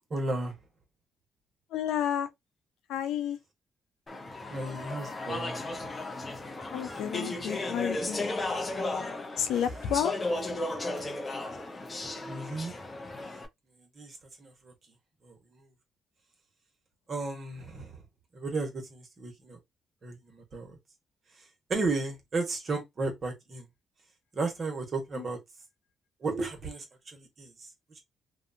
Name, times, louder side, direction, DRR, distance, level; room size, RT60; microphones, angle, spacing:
voice 1, 0.1-0.6 4.5-5.8 9.5-9.7 12.0-12.7 13.7-14.7 15.2-15.7 17.1-18.0 18.3-19.6 20.0-20.8 21.7-23.7 24.3-25.4 26.2-28.0, right 3 dB, 45° right, 1.2 m, -34 dB
voice 2, 1.7-2.3 2.9-3.4 6.7-8.3 9.4-10.1 25.2-25.3, left 9 dB, 85° left, 0.5 m, -30 dB
Speech / Chatter, 4.1-13.5, left 2 dB, 30° left, 0.6 m, -35 dB
2.6 x 2.3 x 2.7 m
cardioid pair, 90°, 0 cm